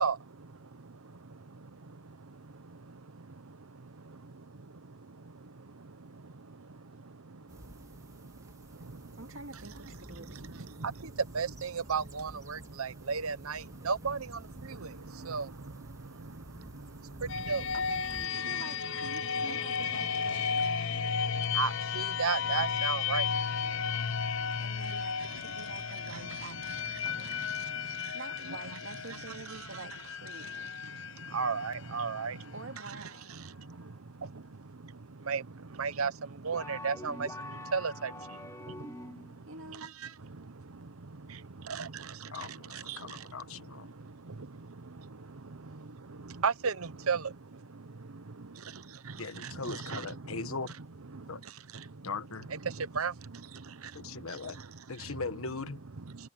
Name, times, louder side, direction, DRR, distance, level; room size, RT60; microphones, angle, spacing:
voice 1, 0.0-17.7 18.3-28.8 29.1-30.0 30.3-32.5 32.9-50.5 51.1-52.1 52.5-55.1 56.0-56.3, right 5 dB, 85° right, 0.9 m, -38 dB
sound 1, 7.5-18.3, right 1 dB, 15° right, 2.1 m, -51 dB
voice 2, 9.2-10.5 17.7-20.6 24.6-27.5 27.7-30.8 32.5-33.3 39.5-39.9 54.4-54.5, right 3 dB, 65° right, 2.4 m, -47 dB
sound 2, 17.3-32.9, left 6 dB, 60° left, 0.6 m, -34 dB
sound 3, 36.5-39.4, left 1 dB, 15° left, 2.5 m, -44 dB
voice 3, 42.3-43.9 49.2-50.8 51.3-51.4 52.0-52.5 53.9-54.6 54.9-55.8, left 4 dB, 80° left, 1.3 m, -39 dB
head